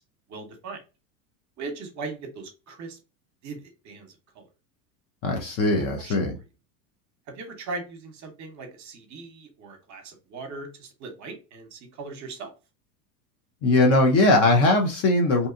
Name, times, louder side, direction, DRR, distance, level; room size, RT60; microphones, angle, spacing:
voice 1, 0.3-0.8 1.6-3.0 3.4-4.1 4.3-4.4 5.8-6.1 7.3-12.5, right 3 dB, 35° right, 5 dB, 0.9 m, -39 dB
voice 2, 5.2-6.4 13.6-15.5, left 2 dB, 30° left, 3 dB, 0.5 m, -20 dB
2.7 x 2.3 x 2.5 m, 0.28 s
hypercardioid pair, 100°, 50 cm